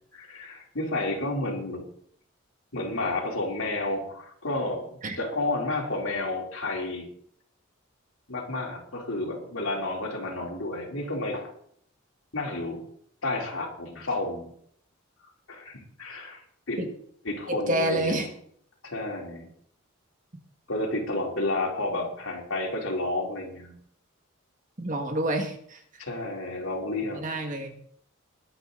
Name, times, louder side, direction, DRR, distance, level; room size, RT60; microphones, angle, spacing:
voice 1, 0.1-1.9 2.7-7.1 8.3-11.5 12.3-12.8 13.2-14.5 15.5-16.8 17.2-18.3 18.8-19.5 20.7-23.8 26.0-27.2, left 2 dB, 75° left, -1 dB, 3.8 m, -31 dB
voice 2, 17.5-18.3 24.8-25.8 27.2-27.8, right 1 dB, 35° right, 4 dB, 1.9 m, -28 dB
21.0 x 9.0 x 4.0 m, 0.65 s
head